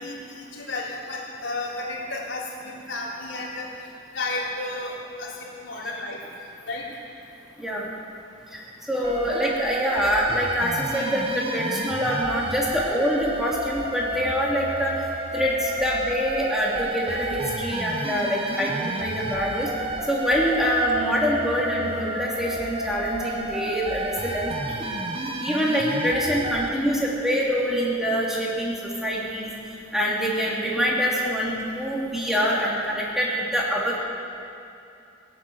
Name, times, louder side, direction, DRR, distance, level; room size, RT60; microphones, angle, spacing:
voice 1, 0.0-3.7 4.1-6.2 6.7-6.8 20.5-20.6, left 2 dB, 75° left, -5 dB, 3.8 m, -32 dB
voice 2, 8.9-14.9 15.3-19.7 20.1-24.7 25.4-29.5 29.9-34.0, equal, ahead, -5 dB, 2.9 m, -25 dB
sound 1, 9.0-26.7, right 2 dB, 30° right, 1.0 m, -31 dB
17.0 x 10.5 x 8.0 m, 2.6 s
head